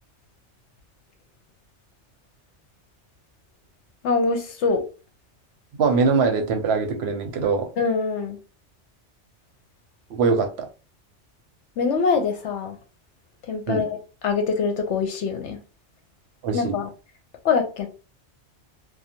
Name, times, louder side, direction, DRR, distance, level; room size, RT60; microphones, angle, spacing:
voice 1, 4.0-4.8 7.8-8.4 11.8-12.7 13.5-14.0 14.2-15.6 16.5-16.9 17.4-17.9, left 5 dB, 75° left, 0.9 m, -24 dB
voice 2, 5.8-7.7 10.1-10.7 13.7-13.8 16.4-16.8, right 4 dB, 70° right, 0.8 m, -22 dB
2.5 x 2.2 x 2.8 m
omnidirectional pair, 1.2 m